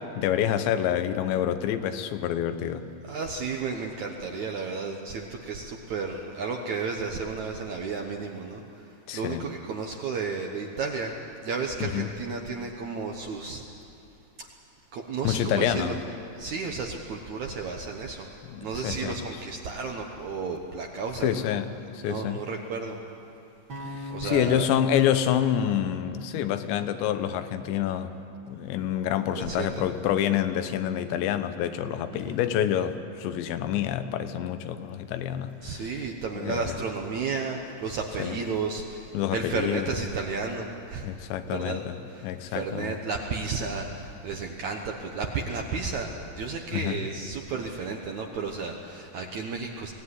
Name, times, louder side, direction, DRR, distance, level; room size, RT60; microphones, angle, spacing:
voice 1, 0.2-2.9 9.1-9.5 11.8-12.1 15.2-16.0 18.5-19.2 21.2-22.5 23.9-28.1 28.5-35.9 36.4-36.7 38.2-38.4 39.1-39.9 41.0-42.0 42.2-43.0 46.7-47.1, left 10 dB, 80° left, 9 dB, 3.2 m, -27 dB
voice 2, 3.0-13.6 14.4-14.5 14.9-15.9 16.3-21.3 22.0-23.0 24.1-24.7 29.3-29.8 32.3-32.4 35.6-41.1 41.5-49.9, right 4 dB, 80° right, 2 dB, 1.7 m, -33 dB
sound 1, 23.7-27.8, left 2 dB, 40° right, 1.8 m, -41 dB
23.5 x 17.0 x 9.8 m, 2.7 s
omnidirectional pair, 5.1 m